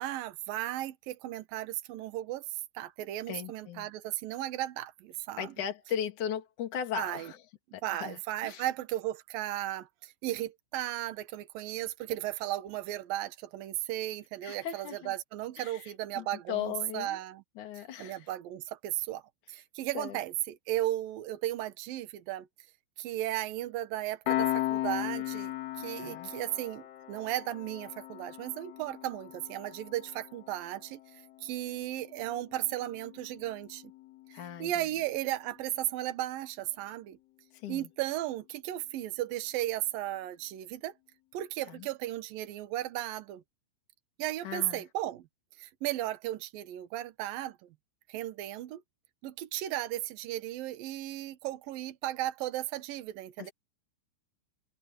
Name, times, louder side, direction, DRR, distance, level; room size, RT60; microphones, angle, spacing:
voice 1, 0.0-2.5 2.7-5.5 6.9-7.3 7.8-17.4 18.0-19.2 19.5-22.5 23.0-31.0 31.4-33.8 34.6-37.2 37.7-40.9 41.3-43.4 44.2-45.3 45.6-47.7 48.1-48.8 49.2-53.5, right 14 dB, 75° right, 2.1 m, -35 dB
voice 2, 3.3-3.9 5.4-7.4 7.7-8.7 14.4-15.1 15.6-17.2 17.6-18.3 19.9-20.2 26.0-26.3 34.3-34.7 37.5-37.9 41.7-41.9 44.4-44.8 53.4-53.5, left 9 dB, 40° left, 4.0 m, -38 dB
Piano, 24.3-35.3, left 15 dB, 75° left, 3.8 m, -38 dB
omnidirectional pair, 5.9 m